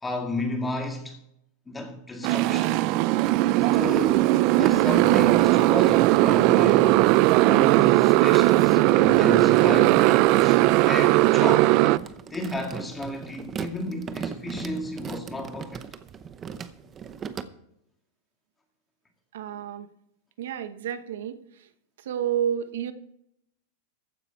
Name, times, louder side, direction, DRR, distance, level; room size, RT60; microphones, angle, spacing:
voice 1, 0.0-1.2 1.7-2.8 3.6-7.0 7.4-11.8 12.3-15.8, left 2 dB, 10° left, 2.0 m, -33 dB
Motorcycle, 2.2-12.0, right 18 dB, 45° right, 0.4 m, -19 dB
sound 1, 3.2-7.4 8.0-17.4, right 7 dB, 20° right, 0.7 m, -40 dB
voice 2, 19.3-19.9 20.4-21.7 22.0-22.9, right 9 dB, 80° right, 1.0 m, -30 dB
14.5 x 9.6 x 4.5 m
supercardioid pair, 150°, 0 cm